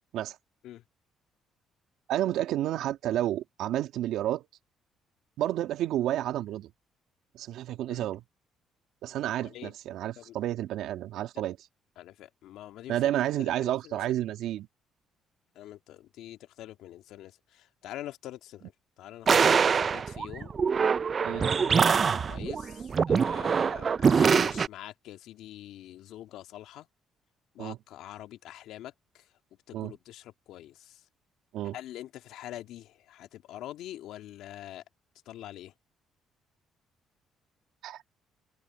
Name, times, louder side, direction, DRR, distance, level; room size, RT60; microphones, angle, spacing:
voice 1, 2.1-4.5 5.4-6.7 7.3-8.2 9.0-11.6 12.9-14.7 21.2-21.4 27.6-27.8 29.7-29.9 31.5-31.8 37.8-38.0, right 13 dB, 75° right, 2.1 m, -30 dB
voice 2, 9.2-9.7 10.2-10.4 12.0-13.1 13.6-14.2 15.6-20.5 21.2-26.9 27.5-29.3 29.7-31.1 31.7-34.8 35.3-35.7, left 13 dB, 75° left, 2.0 m, -45 dB
sound 1, 19.3-24.7, right 6 dB, 45° right, 0.3 m, -24 dB
supercardioid pair, 65°, 0 cm